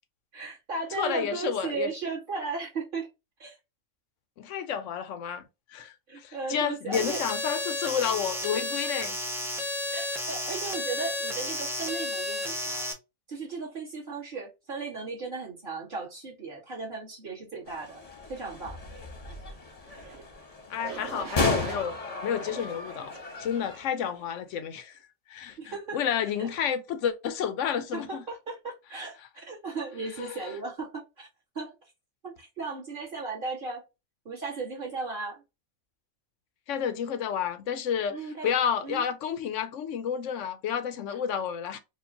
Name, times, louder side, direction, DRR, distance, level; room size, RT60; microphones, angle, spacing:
voice 1, 0.3-3.1 3.4-3.6 6.1-7.2 9.9-12.9 13.3-18.0 18.3-18.8 25.6-26.0 26.4-26.5 27.9-31.3 31.6-31.7 32.2-33.8 34.3-35.4 38.1-38.5 38.8-39.0, right 4 dB, 35° right, 1.9 m, -36 dB
voice 2, 1.0-1.9 4.4-5.4 5.7-9.2 20.7-22.0 22.2-23.1 23.4-24.9 25.3-25.6 25.9-28.2 30.2-30.4 36.7-38.2 38.4-41.8, left 8 dB, 65° left, 0.9 m, -30 dB
sound 1, 6.9-12.9, left 1 dB, 5° right, 0.4 m, -32 dB
sound 2, 17.7-23.8, left 3 dB, 30° left, 0.9 m, -34 dB
sound 3, 19.9-20.2 20.8-21.9 22.4-23.4 24.0-24.4, right 6 dB, 60° right, 1.1 m, -42 dB
4.6 x 2.5 x 2.7 m
omnidirectional pair, 1.5 m